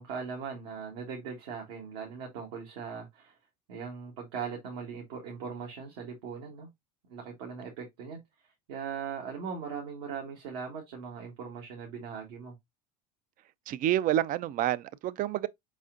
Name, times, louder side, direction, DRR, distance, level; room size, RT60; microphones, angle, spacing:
voice 1, 0.0-3.3 3.7-6.7 7.1-8.2 8.7-12.5, right 6 dB, 75° right, 1.5 m, -39 dB
voice 2, 13.7-15.5, right 12 dB, 45° right, 0.4 m, -28 dB
4.9 x 4.1 x 2.5 m
hypercardioid pair, 85°, 20 cm